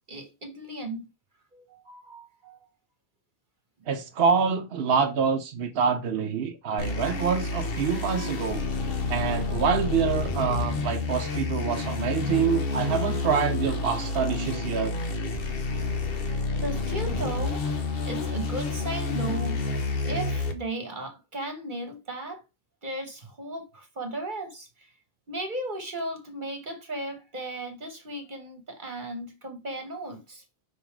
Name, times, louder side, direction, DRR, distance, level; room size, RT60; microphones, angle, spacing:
voice 1, 0.1-1.1 1.5-2.7 13.1-13.2 16.6-17.6 18.1-19.6 20.0-22.4 22.8-24.9 25.3-30.4, right 1 dB, 50° right, 1.3 m, -36 dB
voice 2, 3.9-8.7 9.1-15.0, right 6 dB, 70° right, 0.9 m, -26 dB
sound 1, 6.8-20.5, left 3 dB, 60° left, 1.1 m, -29 dB
5.5 x 3.9 x 4.5 m
omnidirectional pair, 1.1 m